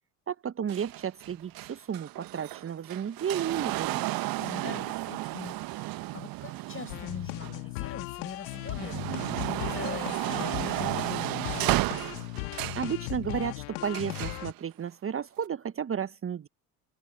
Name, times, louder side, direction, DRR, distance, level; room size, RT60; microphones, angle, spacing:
voice 1, 0.3-4.1 12.8-16.5, right 8 dB, 30° right, 1.3 m, -33 dB
sound 1, 0.7-7.9 8.4-12.9 13.9-14.5 15.4-15.5, right 19 dB, 50° right, 1.3 m, -33 dB
voice 2, 4.4-11.5, left 5 dB, 30° left, 5.9 m, -42 dB
sound 2, 6.9-14.5, left 29 dB, 65° left, 2.1 m, -37 dB
open air
figure-of-eight pair, 55°, 45 cm